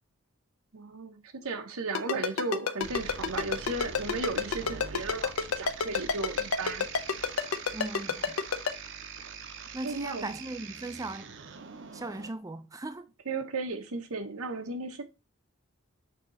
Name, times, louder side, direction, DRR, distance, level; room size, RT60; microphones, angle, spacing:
voice 1, 0.7-6.9 9.8-10.3 13.3-15.0, right 3 dB, 90° right, 1.0 m, -35 dB
Ringtone, 1.9-8.7, left 5 dB, 80° left, 0.7 m, -28 dB
sound 1, 2.8-12.3, right 6 dB, 55° right, 0.7 m, -43 dB
voice 2, 7.7-8.4 9.7-11.3 11.9-13.1, right 2 dB, 15° right, 0.4 m, -38 dB
6.8 x 2.9 x 5.3 m
head